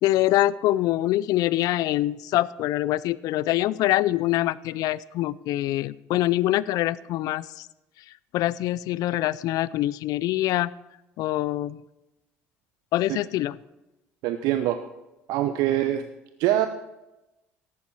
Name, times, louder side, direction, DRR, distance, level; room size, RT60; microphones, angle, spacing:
voice 1, 0.0-7.7 8.3-10.7 11.2-11.8 12.9-13.6, left 15 dB, 60° left, 20 dB, 0.4 m, -24 dB
voice 2, 14.2-14.8 15.3-16.0 16.4-16.7, right 13 dB, 65° right, 9 dB, 0.7 m, -23 dB
14.0 x 11.0 x 4.6 m, 0.98 s
hypercardioid pair, 65°, 7 cm